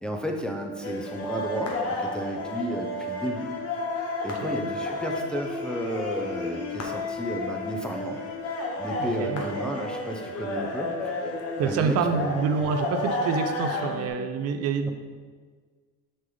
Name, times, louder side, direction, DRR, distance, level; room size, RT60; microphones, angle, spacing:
voice 1, 0.0-3.6 4.2-8.2 8.8-11.2 11.6-12.3, equal, 5° left, 1 dB, 0.8 m, -33 dB
sound 1, 0.8-14.1, left 2 dB, 55° left, 1.3 m, -31 dB
voice 2, 9.0-9.5 11.6-14.9, right 5 dB, 55° right, 7 dB, 0.7 m, -27 dB
6.2 x 5.5 x 3.9 m, 1.5 s
cardioid pair, 105°, 29 cm